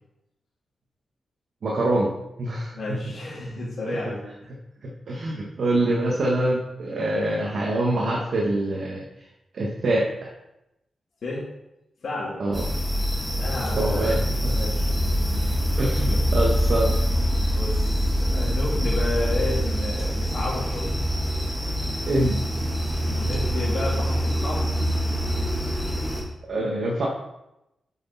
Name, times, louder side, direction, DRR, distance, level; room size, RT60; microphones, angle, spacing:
voice 1, 1.6-2.1 2.4-3.1 3.9-4.0 4.8-9.1 9.5-10.3 12.4-12.7 13.8-14.6 15.8-17.0 22.1-22.4 26.5-27.1, right 1 dB, 65° right, -3 dB, 1.5 m, -25 dB
voice 2, 2.7-4.3 11.2-11.4 12.0-12.4 13.4-14.1 14.5-15.7 17.5-20.9 23.0-24.6, left 2 dB, 65° left, -8 dB, 2.9 m, -32 dB
sound 1, 12.5-26.2, equal, 5° right, 2.0 m, -24 dB
7.6 x 6.2 x 4.2 m, 0.89 s
cardioid pair, 95°, 0 cm